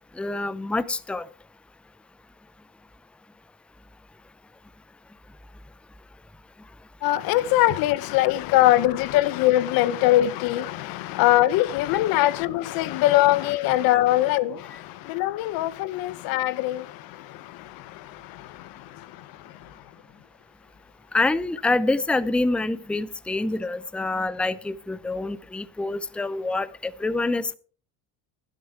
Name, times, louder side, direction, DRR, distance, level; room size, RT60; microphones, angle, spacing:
voice 1, 0.2-1.3 13.9-14.0 21.1-27.6, left 2 dB, 5° left, 0.5 m, -26 dB
voice 2, 7.0-14.6 15.1-16.8, left 15 dB, 80° left, 0.9 m, -21 dB
11.0 x 11.0 x 4.7 m
cardioid pair, 110°, 35 cm